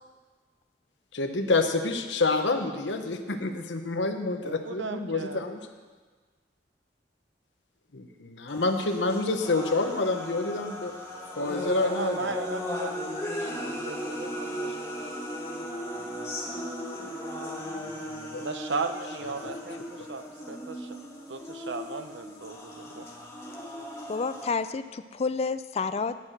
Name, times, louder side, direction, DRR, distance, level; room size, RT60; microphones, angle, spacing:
voice 1, 1.1-5.6 7.9-10.9 11.4-12.2 17.7-18.4, left 3 dB, 90° left, 6 dB, 0.9 m, -28 dB
voice 2, 4.4-5.4 11.8-15.1 18.4-21.0 21.3-23.1, right 4 dB, 85° right, 8 dB, 0.8 m, -36 dB
sound 1, 8.5-24.5, equal, 15° left, 1.4 m, -36 dB
voice 3, 24.1-26.1, left 4 dB, 35° left, 12 dB, 0.4 m, -29 dB
10.5 x 5.9 x 7.8 m, 1.4 s
head